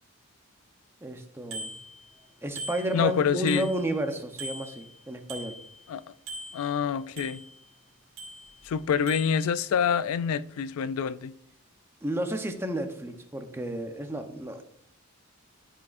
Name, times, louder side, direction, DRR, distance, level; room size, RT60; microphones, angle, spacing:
voice 1, 1.0-1.7 2.4-5.6 12.0-14.6, right 1 dB, 10° right, 0.7 m, -32 dB
Bicycle bell, 1.5-2.2 2.6-4.1 4.4-5.9 6.3-7.7 8.2-8.8 9.1-9.4, right 1 dB, 70° right, 2.3 m, -42 dB
voice 2, 2.9-3.7 5.9-6.0 6.5-7.4 8.6-11.3, left 7 dB, 75° left, 0.3 m, -26 dB
12.5 x 5.0 x 2.5 m
head